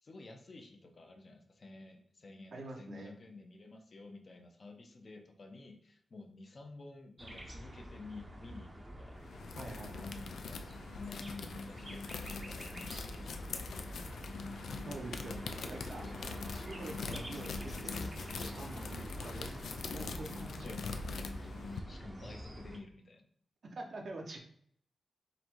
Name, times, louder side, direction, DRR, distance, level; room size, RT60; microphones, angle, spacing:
voice 1, 0.0-9.2 10.1-14.0 20.5-21.3 21.9-23.3, left 3 dB, 50° left, 3 dB, 0.7 m, -52 dB
voice 2, 2.5-3.1 9.6-10.1 14.8-16.1 16.7-19.6 19.9-21.2 22.2-22.3 23.6-24.4, right 2 dB, 60° right, 2 dB, 0.8 m, -46 dB
sound 1, 7.2-22.8, equal, 20° right, 0.7 m, -47 dB
sound 2, 9.2-21.8, left 4 dB, 80° left, 0.4 m, -43 dB
4.0 x 2.6 x 4.5 m, 0.64 s
cardioid pair, 85°, 0 cm